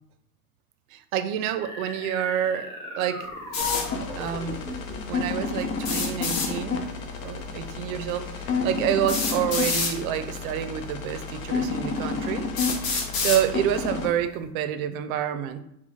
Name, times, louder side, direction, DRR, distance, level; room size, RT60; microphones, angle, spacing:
voice 1, 0.9-3.3 4.2-4.6 5.1-6.8 7.2-12.5 13.2-15.6, right 10 dB, 65° right, 10 dB, 0.5 m, -28 dB
sound 1, 1.6-5.1, left 1 dB, 10° left, 0.6 m, -38 dB
sound 2, 3.5-3.9 5.8-6.5 7.9-8.0 9.1-9.9 10.9-11.0 11.7-11.8 12.6-13.4, left 4 dB, 40° left, 0.9 m, -27 dB
sound 3, 3.6-14.1, left 4 dB, 75° left, 0.9 m, -31 dB
4.4 x 2.1 x 4.2 m, 0.76 s
supercardioid pair, 165°, 45 cm